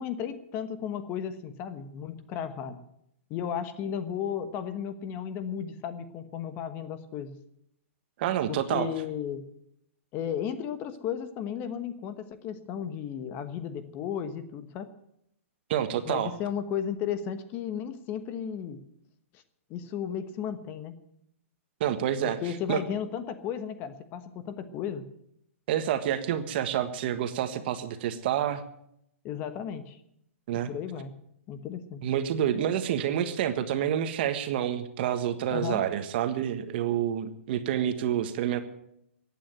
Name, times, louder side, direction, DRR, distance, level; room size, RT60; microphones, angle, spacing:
voice 1, 0.0-2.8 3.3-7.3 8.5-9.4 10.1-14.9 16.0-18.8 19.7-21.0 22.4-25.0 29.2-30.0 30.5-31.1 31.5-32.0 35.5-35.8, left 8 dB, 25° left, 11 dB, 1.2 m, -34 dB
voice 2, 8.2-8.9 15.7-16.3 21.8-22.4 22.7-22.8 25.7-28.6 30.5-30.7 32.0-38.6, right 10 dB, 45° right, 10 dB, 1.5 m, -28 dB
15.0 x 9.2 x 9.1 m, 0.75 s
hypercardioid pair, 155°, 8 cm